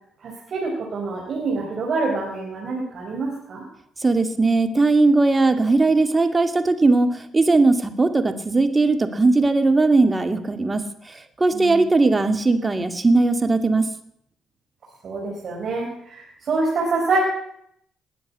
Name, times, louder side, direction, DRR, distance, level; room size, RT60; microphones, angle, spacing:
voice 1, 0.2-3.6 11.5-11.9 15.0-17.2, right 3 dB, 55° right, -2 dB, 4.3 m, -26 dB
voice 2, 4.0-13.9, right 3 dB, 25° right, 8 dB, 2.3 m, -19 dB
20.0 x 7.7 x 8.3 m, 0.71 s
hypercardioid pair, 50°, 0 cm